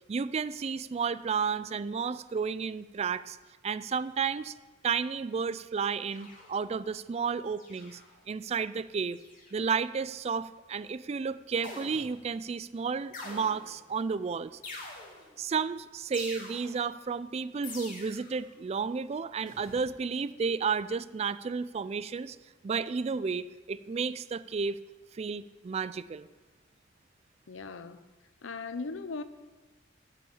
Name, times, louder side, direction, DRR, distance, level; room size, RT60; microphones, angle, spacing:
voice 1, 0.1-3.4 3.6-4.5 4.8-8.0 8.3-9.2 9.5-14.5 15.4-22.4 22.6-24.8 25.1-26.3, right 5 dB, 35° right, 16 dB, 0.3 m, -32 dB
sound 1, 6.1-6.8 7.6-8.2 9.1-9.7 11.6-12.3 13.1-13.9 14.6-15.4 16.1-16.9 17.6-18.4 19.5-19.9, left 2 dB, 45° left, 2.5 m, -45 dB
voice 2, 27.5-28.0 28.4-29.2, left 4 dB, 85° left, 12 dB, 0.7 m, -38 dB
8.3 x 7.0 x 8.5 m, 1.2 s
head